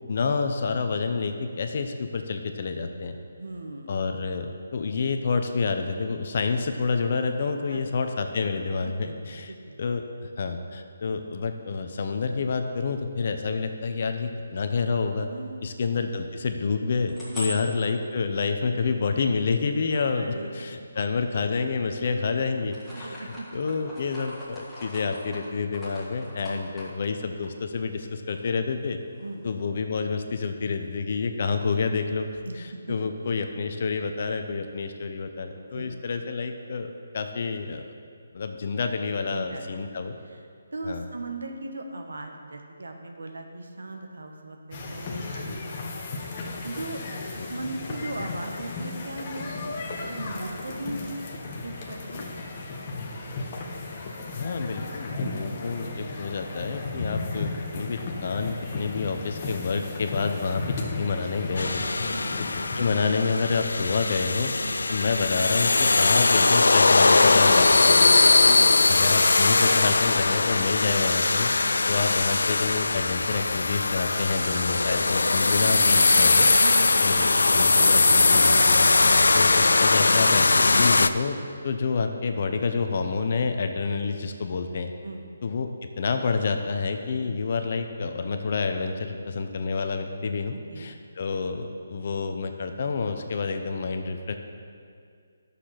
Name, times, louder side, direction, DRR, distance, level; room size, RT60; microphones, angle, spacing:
voice 1, 0.1-3.2 3.9-9.5 9.8-10.0 10.4-15.3 15.6-29.0 29.4-32.3 32.6-37.9 38.3-40.2 40.8-41.0 45.5-45.6 47.4-47.5 54.3-61.9 62.7-64.5 64.9-68.2 68.9-71.5 71.9-76.5 77.0-78.9 79.3-81.4 81.6-84.9 85.4-85.7 86.0-94.3, left 4 dB, 45° left, 6 dB, 0.7 m, -28 dB
voice 2, 3.4-3.9 7.7-7.9 8.8-9.2 9.5-9.8 15.3-15.6 17.3-17.5 20.1-20.6 22.0-22.2 22.9-23.6 26.5-26.6 29.2-29.5 32.4-32.6 32.9-33.0 35.7-35.9 39.3-39.6 39.9-40.4 40.7-45.8 46.3-47.0 47.3-49.5 49.8-51.1 51.6-52.3 56.9-57.1 62.1-62.4 64.6-64.8 68.5-68.8 71.6-71.9 74.5-74.7 76.6-76.9 79.0-79.3 85.0-85.3 90.5-90.9, right 2 dB, 90° right, 4 dB, 1.2 m, -38 dB
sound 1, 17.1-20.9 21.4-22.2 22.5-28.0 28.3-28.4 28.7-29.9, left 1 dB, ahead, 1.7 m, -42 dB
sound 2, 44.7-62.8, left 3 dB, 30° left, 1.1 m, -35 dB
sound 3, 61.6-81.1, left 3 dB, 85° left, 0.4 m, -20 dB
9.8 x 6.8 x 5.8 m, 2.2 s
hypercardioid pair, 165°, 0 cm